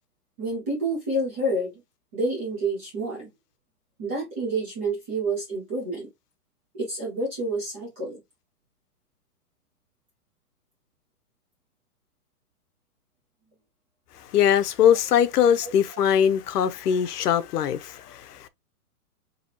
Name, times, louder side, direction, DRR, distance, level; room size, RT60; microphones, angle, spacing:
voice 1, 0.4-1.8 2.1-3.3 4.0-6.1 6.7-8.2 15.6-15.7 17.4-17.5, right 2 dB, 10° right, 0.4 m, -29 dB
voice 2, 14.3-18.5, left 9 dB, 85° left, 0.7 m, -21 dB
4.1 x 2.8 x 2.8 m
hypercardioid pair, 150°, 46 cm